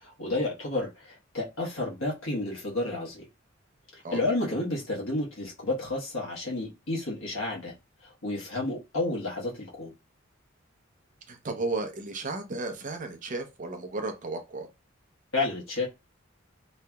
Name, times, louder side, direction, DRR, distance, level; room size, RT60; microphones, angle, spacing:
voice 1, 0.0-3.2 3.9-7.7 8.2-9.9 15.3-15.9, left 2 dB, 75° left, 1.3 m, -31 dB
voice 2, 11.3-14.7, right 3 dB, 40° right, 0.6 m, -34 dB
3.1 x 2.8 x 2.3 m
head